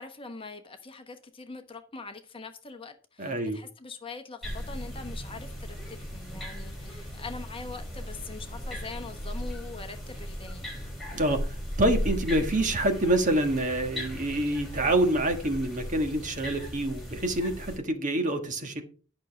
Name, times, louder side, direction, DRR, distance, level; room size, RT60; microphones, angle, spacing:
voice 1, 0.0-10.7, left 4 dB, 25° left, 1.1 m, -43 dB
voice 2, 3.2-3.6 11.1-11.4 11.8-18.8, right 1 dB, 35° right, 1.5 m, -26 dB
sound 1, 4.4-17.8, equal, ahead, 5.4 m, -37 dB
11.0 x 6.4 x 5.1 m
head